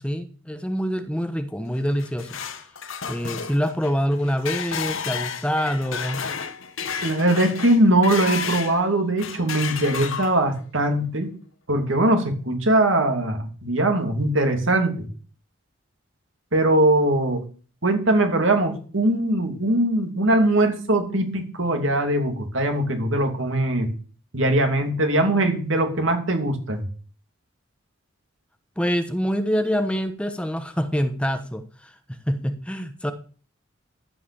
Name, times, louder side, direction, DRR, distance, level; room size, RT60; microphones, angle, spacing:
voice 1, 0.0-2.4 3.1-6.2 28.8-33.1, equal, 5° left, 8 dB, 1.0 m, -26 dB
sound 1, 1.8-8.8 9.2-10.6, left 6 dB, 80° left, 1.3 m, -32 dB
voice 2, 7.0-11.3 11.7-15.1 16.5-17.4 17.8-23.9 24.3-26.8, right 1 dB, 70° right, 5 dB, 2.8 m, -21 dB
14.5 x 5.8 x 7.0 m, 0.40 s
head